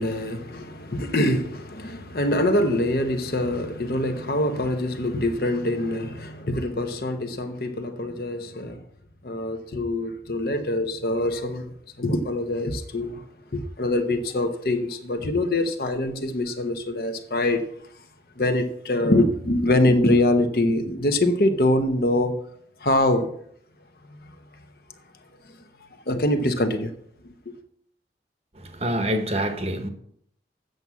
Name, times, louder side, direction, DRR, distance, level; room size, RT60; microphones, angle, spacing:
voice 1, 0.0-8.8 9.2-13.2 13.5-17.7 18.4-22.4 22.8-23.3 24.1-24.2 25.4-25.6 26.1-26.9 27.2-27.6, left 1 dB, 60° left, 0.9 m, -24 dB
voice 2, 28.6-29.9, equal, 35° right, 1.0 m, -26 dB
7.9 x 6.9 x 6.0 m
head